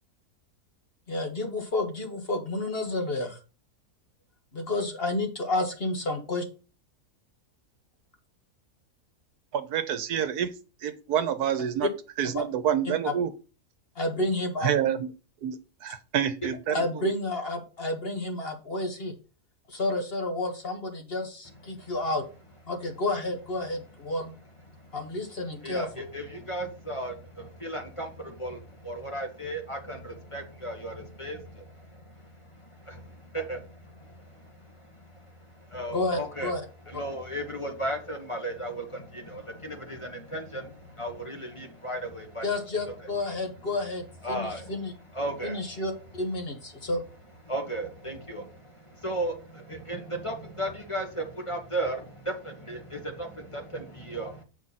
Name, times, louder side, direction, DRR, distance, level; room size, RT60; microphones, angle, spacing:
voice 1, 1.1-3.4 4.5-6.4 11.8-11.9 12.3-12.4 13.0-13.1 13.9-14.7 16.7-19.1 19.7-22.2 22.7-24.3 24.9-25.9 35.9-36.6 42.4-44.9 45.4-47.0, left 2 dB, 40° left, 3 dB, 1.4 m, -30 dB
voice 2, 9.5-10.5 10.8-11.9 12.2-13.3 14.6-15.1 15.4-17.1, right 9 dB, 75° right, 11 dB, 1.3 m, -28 dB
voice 3, 26.1-27.1 27.6-28.1 28.4-28.5 28.9-30.0 30.3-30.9 31.2-31.4 33.5-33.6 35.7-36.5 36.9-38.8 40.3-40.6 41.0-42.4 44.2-44.6 45.2-45.5 47.5-48.4 49.0-49.3 49.9-50.0 50.2-51.1 51.5-52.0 52.7-52.8 54.1-54.3, right 1 dB, 20° left, 2 dB, 1.1 m, -33 dB
7.5 x 5.1 x 4.1 m, 0.34 s
omnidirectional pair, 1.7 m